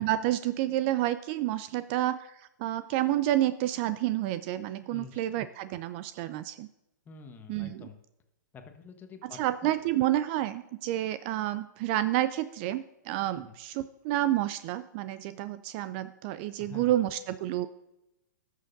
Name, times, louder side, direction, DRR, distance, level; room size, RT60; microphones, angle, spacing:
voice 1, 0.0-6.7 7.5-7.9 9.2-17.7, right 14 dB, 35° right, 14 dB, 0.4 m, -29 dB
voice 2, 7.1-8.0 8.5-9.7 13.3-13.6 16.6-16.9, left 5 dB, 20° left, 6 dB, 1.1 m, -47 dB
18.0 x 6.4 x 2.6 m, 0.92 s
hypercardioid pair, 130°, 10 cm